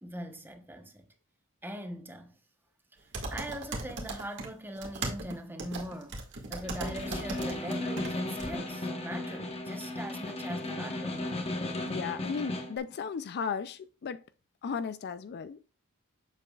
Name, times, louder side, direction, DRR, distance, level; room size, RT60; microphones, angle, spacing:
voice 1, 0.0-1.1 1.6-2.4 2.9-6.2 6.5-11.2, right 1 dB, 10° right, 1.0 m, -41 dB
sound 1, 3.1-4.5 4.7-8.1 8.4-8.5, right 2 dB, 55° right, 1.9 m, -37 dB
Snare drum, 6.6-12.8, left 1 dB, 30° left, 1.1 m, -35 dB
voice 2, 11.9-14.2 14.6-15.6, left 6 dB, 50° left, 0.4 m, -35 dB
8.0 x 7.0 x 2.4 m
head